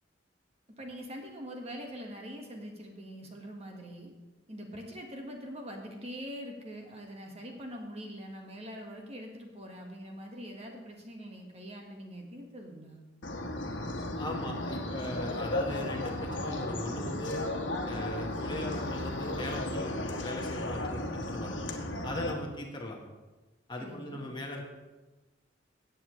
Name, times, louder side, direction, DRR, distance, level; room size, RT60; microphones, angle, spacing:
voice 1, 0.8-4.1 4.5-13.0 23.8-24.2, equal, 35° right, 1 dB, 1.6 m, -43 dB
sound 1, 13.2-22.3, left 1 dB, 80° left, 1.2 m, -35 dB
voice 2, 14.2-17.5 17.8-21.6 22.0-23.0 23.7-24.6, left 1 dB, 25° left, 1 dB, 1.5 m, -39 dB
17.5 x 7.8 x 3.2 m, 1.1 s
head